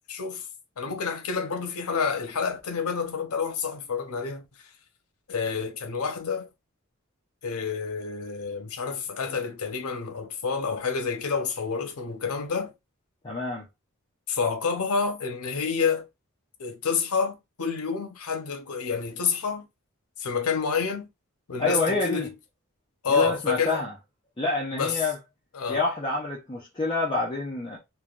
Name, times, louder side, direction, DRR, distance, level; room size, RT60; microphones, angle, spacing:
voice 1, 0.1-0.5 0.8-4.7 5.3-6.5 7.4-12.7 14.3-16.1 16.6-19.7 20.2-21.1 21.5-22.3 23.0-23.8 24.8-25.1 25.5-25.8, left 5 dB, 85° left, 0.7 m, -28 dB
voice 2, 13.2-13.7 21.6-22.3 23.1-23.9 24.4-25.2 25.7-27.8, left 2 dB, 20° left, 0.5 m, -27 dB
3.2 x 2.2 x 2.4 m
head